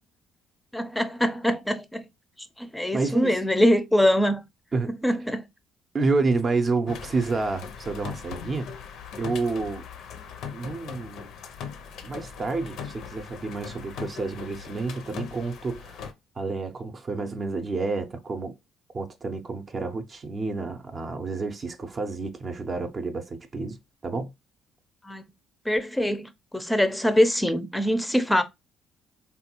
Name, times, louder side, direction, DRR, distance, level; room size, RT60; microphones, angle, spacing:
voice 1, 0.7-2.0 2.6-4.4 5.0-5.4 25.1-25.2 25.7-28.4, equal, 5° left, 0.5 m, -23 dB
voice 2, 2.9-3.4 4.7-4.9 5.2-5.3 5.9-8.7 9.2-9.8 10.5-11.2 12.0-16.0 16.4-18.5 18.9-24.3, right 3 dB, 40° right, 0.6 m, -29 dB
sound 1, 6.9-16.1, left 7 dB, 70° left, 0.5 m, -40 dB
3.3 x 2.3 x 2.9 m
hypercardioid pair, 60°, 0 cm